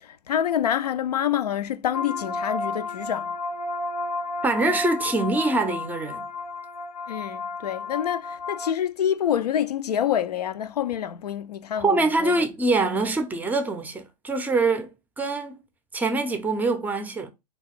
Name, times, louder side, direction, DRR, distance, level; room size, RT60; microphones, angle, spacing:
voice 1, 0.0-3.3 7.1-12.4, left 9 dB, 70° left, 0.4 m, -27 dB
sound 1, 1.9-8.7, left 3 dB, 90° left, 0.8 m, -32 dB
voice 2, 4.4-6.3 11.8-14.9 15.2-15.6 15.9-17.3, right 3 dB, 10° right, 0.5 m, -24 dB
4.0 x 2.3 x 4.0 m
figure-of-eight pair, 105°, 21 cm